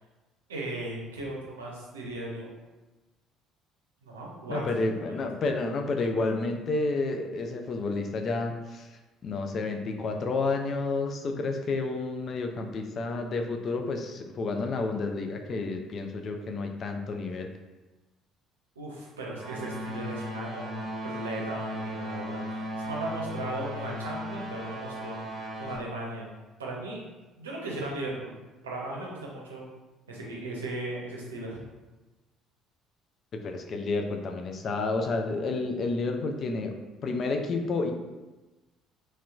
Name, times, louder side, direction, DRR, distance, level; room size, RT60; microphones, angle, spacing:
voice 1, 0.5-2.5 4.0-4.9 18.8-25.2 25.6-26.3 26.6-27.0 27.4-28.3 28.6-29.6 30.1-31.6, right 2 dB, 80° right, -3 dB, 0.6 m, -37 dB
voice 2, 4.5-8.9 9.2-17.5 33.4-36.7 37.0-37.9, left 3 dB, 45° left, 4 dB, 0.4 m, -30 dB
sound 1, 19.3-25.8, equal, 35° right, 0.8 m, -36 dB
3.1 x 2.9 x 2.3 m, 1.1 s
figure-of-eight pair, 55°, 0 cm